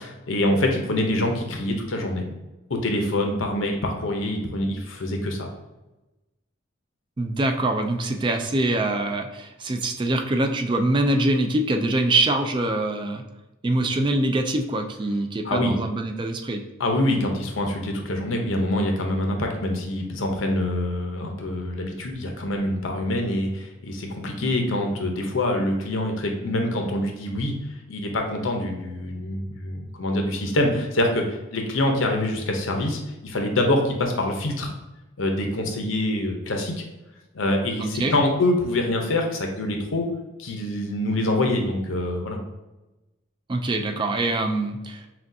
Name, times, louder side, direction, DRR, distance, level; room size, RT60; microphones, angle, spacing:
voice 1, 0.3-2.3 2.7-5.5 15.4-15.7 16.8-27.5 27.9-34.7 35.2-36.8 37.3-40.1 40.4-42.4, left 1 dB, 90° left, 3 dB, 0.7 m, -25 dB
voice 2, 7.2-13.2 13.6-16.6 24.4-24.5 37.8-38.1 43.5-45.1, right 2 dB, 25° right, 5 dB, 0.3 m, -24 dB
6.0 x 2.3 x 2.6 m, 1.0 s
head